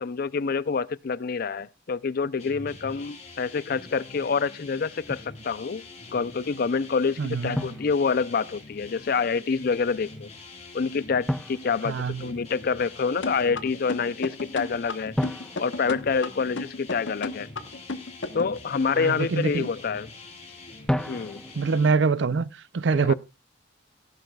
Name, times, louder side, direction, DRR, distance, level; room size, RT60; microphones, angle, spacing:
voice 1, 0.0-5.8 6.1-10.3 10.7-15.1 15.6-17.5 18.3-20.1 21.0-21.4 22.9-23.1, left 5 dB, 50° left, 0.5 m, -27 dB
sound 1, 2.4-21.9, left 3 dB, 35° left, 3.5 m, -45 dB
Drum, 5.1-5.4 7.5-8.7 11.3-12.7 15.2-16.9 20.9-21.8, equal, 5° left, 0.5 m, -33 dB
voice 2, 7.2-7.7 11.8-12.3 18.9-19.7 21.6-22.5 22.7-23.1, right 4 dB, 70° right, 0.5 m, -24 dB
sound 2, 13.2-18.6, left 3 dB, 75° left, 1.0 m, -33 dB
17.0 x 10.5 x 2.3 m
head